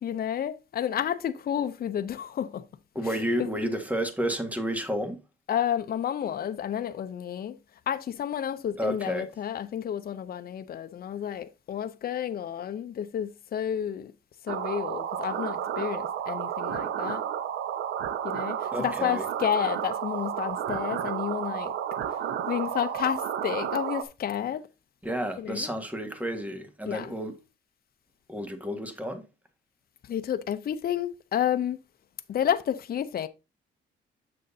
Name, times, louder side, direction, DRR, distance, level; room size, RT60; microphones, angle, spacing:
voice 1, 0.0-2.6 3.4-3.5 5.5-7.6 7.9-14.1 14.4-17.2 18.2-21.7 22.5-24.6 25.4-25.7 26.9-27.1 30.1-31.8 32.3-33.3, left 9 dB, 50° left, 0.7 m, -30 dB
voice 2, 2.9-5.2 8.8-9.3 18.7-19.2 25.0-27.4 28.3-29.2, equal, 5° right, 1.6 m, -31 dB
sound 1, 14.5-24.0, right 9 dB, 80° right, 0.8 m, -32 dB
7.6 x 6.3 x 2.7 m
cardioid pair, 90°, 20 cm